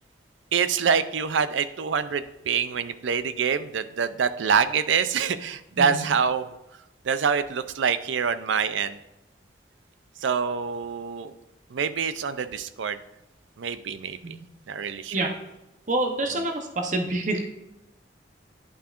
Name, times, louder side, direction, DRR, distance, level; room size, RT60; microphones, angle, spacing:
voice 1, 0.5-6.6 7.0-9.0 10.2-11.3 11.7-13.0 13.6-14.4 14.7-15.3, right 6 dB, 90° right, 13 dB, 0.5 m, -26 dB
voice 2, 15.9-17.4, right 2 dB, 40° right, 4 dB, 0.9 m, -27 dB
11.0 x 5.6 x 2.5 m, 0.93 s
head